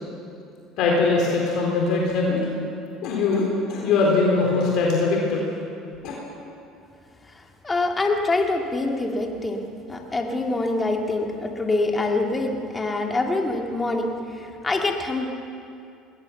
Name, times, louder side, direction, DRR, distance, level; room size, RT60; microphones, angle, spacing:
voice 1, 0.8-2.5 3.0-5.4 6.0-6.1, left 3 dB, 65° left, -2 dB, 4.0 m, -21 dB
voice 2, 7.3-9.6 9.9-15.3, left 2 dB, 20° left, 2 dB, 2.5 m, -25 dB
20.5 x 17.5 x 7.2 m, 2.5 s
supercardioid pair, 90°, 0 cm